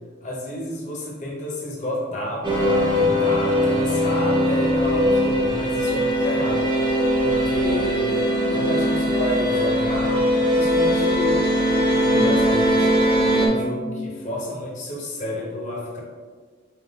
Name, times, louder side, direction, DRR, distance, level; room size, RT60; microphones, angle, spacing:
voice 1, 0.2-6.7 7.2-8.1 8.5-12.9 13.4-16.0, left 1 dB, 40° left, -2 dB, 0.9 m, -31 dB
sound 1, 2.4-13.5, equal, 25° right, 0.7 m, -20 dB
4.4 x 3.6 x 2.8 m, 1.5 s
head